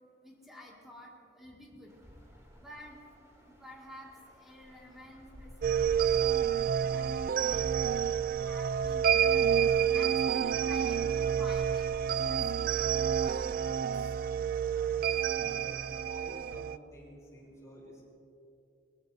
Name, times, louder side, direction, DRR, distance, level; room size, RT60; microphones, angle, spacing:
voice 1, 0.2-2.0 2.5-3.0 3.4-6.5 6.9-8.1 8.4-9.5 9.9-12.9 13.2-13.9, left 1 dB, ahead, -4 dB, 2.2 m, -51 dB
sound 1, 1.9-16.0, equal, 20° right, 2.9 m, -52 dB
sound 2, 5.6-16.8, right 8 dB, 50° right, 0.3 m, -29 dB
voice 2, 14.9-18.0, equal, 20° left, -5 dB, 4.1 m, -51 dB
22.5 x 20.0 x 2.8 m, 2.6 s
head